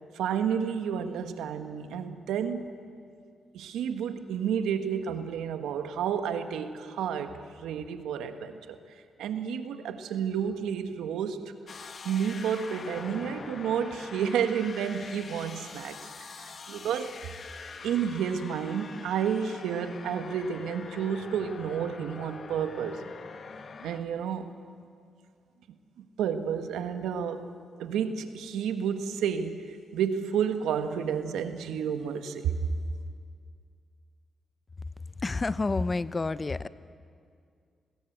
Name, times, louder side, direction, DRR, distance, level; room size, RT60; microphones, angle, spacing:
voice 1, 0.1-2.8 3.5-8.8 9.2-11.5 12.0-16.0 16.4-17.2 17.8-23.0 23.8-24.5 26.2-27.5 27.8-32.6, right 8 dB, 85° right, 8 dB, 1.5 m, -31 dB
sound 1, 11.7-24.0, left 5 dB, 55° left, 1.6 m, -44 dB
voice 2, 35.2-36.7, left 3 dB, 35° left, 15 dB, 0.9 m, -29 dB
29.5 x 20.0 x 8.1 m, 2.2 s
supercardioid pair, 55°, 0 cm